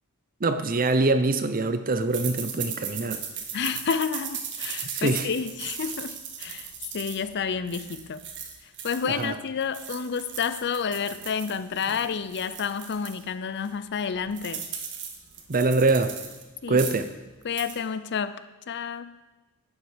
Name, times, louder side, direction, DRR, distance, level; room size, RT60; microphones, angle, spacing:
voice 1, 0.4-3.2 4.9-5.3 9.0-9.3 15.5-16.1 16.7-17.1, right 3 dB, 40° right, 10 dB, 0.7 m, -24 dB
sound 1, 2.1-9.3 9.6-13.2 13.6-13.7 14.0-16.4 16.7-17.1 17.4-17.8, right 7 dB, 55° right, 1.5 m, -37 dB
voice 2, 3.5-8.2 8.8-14.6 16.6-16.9 17.4-18.4 18.7-19.1, left 6 dB, 50° left, 13 dB, 0.5 m, -30 dB
11.5 x 9.2 x 5.1 m, 1.1 s
head